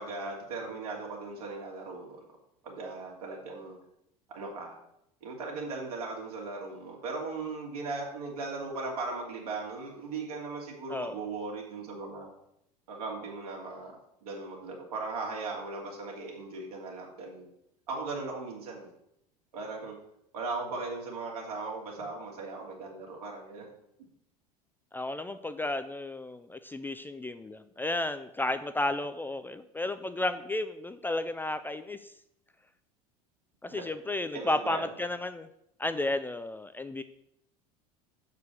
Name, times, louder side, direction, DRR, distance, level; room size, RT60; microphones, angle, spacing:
voice 1, 0.0-2.3 2.6-3.8 4.3-4.8 5.2-12.3 12.9-17.5 17.9-18.9 19.5-20.0 20.3-23.7 33.7-33.8 34.3-34.9, right 3 dB, 70° right, -1 dB, 2.5 m, -38 dB
voice 2, 24.9-32.1 33.6-35.5 35.8-37.0, left 2 dB, 10° left, 10 dB, 0.4 m, -33 dB
6.8 x 4.9 x 6.6 m, 0.78 s
figure-of-eight pair, 75°, 20 cm